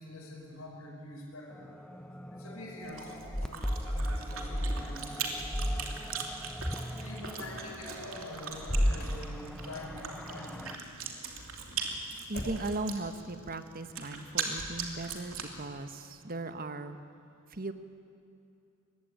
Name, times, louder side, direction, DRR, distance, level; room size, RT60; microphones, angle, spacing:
voice 1, 0.0-1.7 2.3-6.0 6.6-10.8, left 1 dB, 90° left, -3 dB, 5.6 m, -46 dB
sound 1, 1.6-10.7, equal, 5° left, 0.9 m, -35 dB
Chewing mastication, 2.8-15.6, right 5 dB, 75° right, 2.9 m, -40 dB
Motor vehicle (road), 8.6-9.3 12.3-12.9, left 1 dB, 50° left, 7.7 m, -41 dB
voice 2, 12.3-17.0 17.5-17.7, right 2 dB, 45° right, 9 dB, 1.4 m, -37 dB
24.5 x 21.0 x 9.0 m, 2.7 s
head